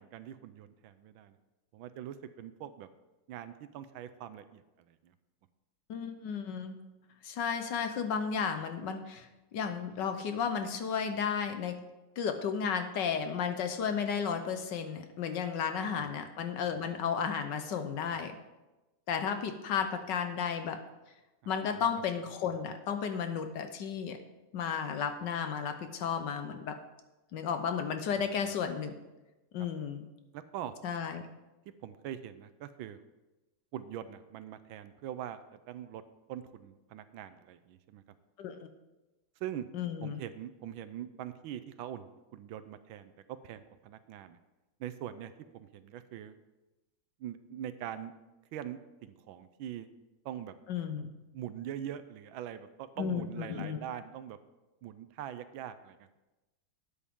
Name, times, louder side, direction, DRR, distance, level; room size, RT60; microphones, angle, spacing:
voice 1, 0.0-1.4 1.7-2.9 3.3-4.6 4.9-5.1 16.0-16.1 21.4-21.9 28.1-28.5 30.3-30.7 31.8-33.0 33.7-35.4 35.7-36.0 36.3-38.0 39.4-39.7 40.0-44.4 44.8-46.4 47.2-48.1 48.5-49.9 50.2-50.5 51.3-54.4 54.8-56.2, right 10 dB, 80° right, 11 dB, 1.4 m, -43 dB
voice 2, 5.9-6.8 7.2-9.3 9.5-11.7 12.2-18.3 19.1-20.8 21.5-24.2 24.5-26.8 27.3-29.0 29.5-30.1 30.8-31.2 38.4-38.5 39.7-40.2 50.7-51.1 53.0-53.8, left 7 dB, 65° left, 8 dB, 1.3 m, -33 dB
12.5 x 8.8 x 3.6 m, 1.1 s
omnidirectional pair, 2.2 m